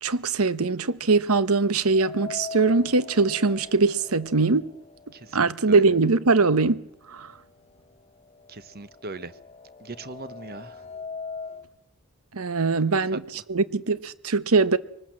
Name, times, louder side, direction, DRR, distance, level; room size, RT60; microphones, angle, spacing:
voice 1, 0.0-4.7 5.3-7.3 12.3-13.2 13.5-14.8, right 3 dB, 85° right, 1.0 m, -22 dB
sound 1, 1.9-5.9 6.3-6.4 7.4-7.5 7.8-11.7, left 4 dB, 30° left, 0.9 m, -41 dB
voice 2, 5.1-5.9 8.5-9.4 9.8-10.8 12.9-13.2, right 3 dB, 45° right, 1.0 m, -39 dB
23.0 x 19.5 x 7.6 m
head